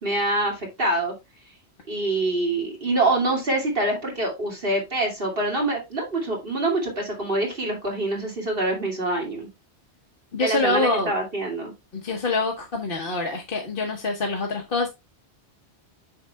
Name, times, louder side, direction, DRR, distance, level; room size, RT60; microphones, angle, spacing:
voice 1, 0.0-1.1 1.9-9.5 10.4-11.7, right 2 dB, 55° right, 2.6 m, -25 dB
voice 2, 10.3-11.1 11.9-14.9, left 2 dB, 55° left, 1.4 m, -25 dB
8.6 x 6.5 x 2.2 m
omnidirectional pair, 1.1 m